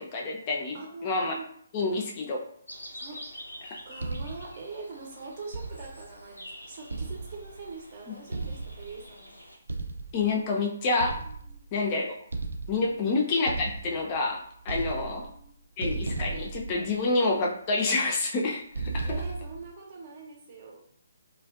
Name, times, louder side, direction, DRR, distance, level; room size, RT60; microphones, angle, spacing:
voice 1, 0.0-0.8 1.0-1.3 1.7-2.4 3.6-3.8 10.1-11.1 11.7-12.2 12.7-15.3 15.8-19.1, left 3 dB, 30° left, -1 dB, 0.4 m, -28 dB
voice 2, 0.7-1.5 2.9-3.2 3.9-9.4 11.2-11.6 12.8-13.2 14.8-15.6 19.0-20.8, right 4 dB, 40° right, 0 dB, 0.6 m, -43 dB
sound 1, 2.7-9.6, equal, 90° left, 0.6 m, -47 dB
sound 2, 4.0-4.6 5.5-6.1 6.9-7.7 8.3-9.1 9.7-10.3 11.0-11.8 12.3-13.0 13.5-14.3 14.6-15.5 15.8-17.3 18.7-19.7, right 3 dB, 70° right, 0.3 m, -35 dB
2.4 x 2.2 x 2.3 m, 0.64 s
figure-of-eight pair, 140°, 0 cm